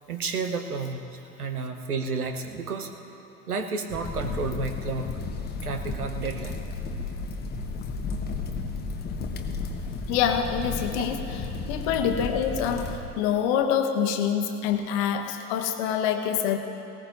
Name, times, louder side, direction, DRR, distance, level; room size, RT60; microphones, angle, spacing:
voice 1, 0.1-2.9 3.5-5.2 5.6-6.6 10.9-11.0, right 4 dB, 80° right, 6 dB, 1.2 m, -31 dB
sound 1, 3.9-13.0, left 3 dB, 20° left, 1.1 m, -33 dB
voice 2, 10.1-11.4 11.7-16.6, left 8 dB, 45° left, 6 dB, 1.2 m, -26 dB
19.0 x 18.0 x 2.6 m, 2.9 s
figure-of-eight pair, 85°, 44 cm